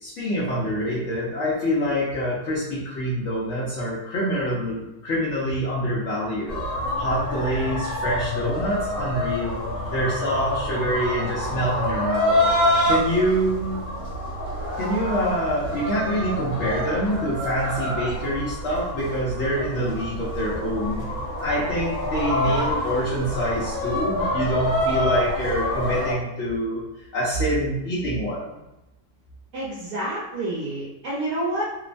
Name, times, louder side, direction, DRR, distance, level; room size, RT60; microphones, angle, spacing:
voice 1, 0.0-6.6 7.0-9.6 9.9-12.4 12.9-13.8 14.8-21.1 21.4-26.8 27.1-28.6, equal, 65° left, -7 dB, 0.7 m, -26 dB
sound 1, 6.5-26.1, left 1 dB, 50° left, 1.5 m, -27 dB
voice 2, 29.5-31.6, right 1 dB, 65° right, -7 dB, 1.1 m, -28 dB
2.9 x 2.1 x 2.5 m, 0.94 s
omnidirectional pair, 1.9 m